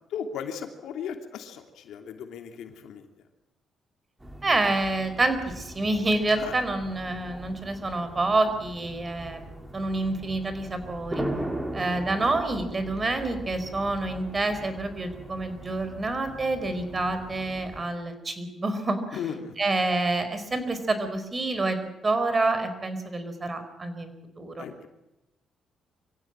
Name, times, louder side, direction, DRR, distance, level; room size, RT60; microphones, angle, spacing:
voice 1, 0.1-3.1 6.4-6.5 12.0-12.1 19.1-19.5 24.6-24.9, left 7 dB, 80° left, 5 dB, 2.9 m, -36 dB
sound 1, 4.2-17.8, right 1 dB, 15° right, 4.0 m, -39 dB
voice 2, 4.4-11.2 11.7-19.2 19.6-21.8 22.0-24.7, right 2 dB, 30° right, 10 dB, 4.4 m, -28 dB
24.5 x 16.0 x 9.0 m, 0.94 s
cardioid pair, 90°, 0 cm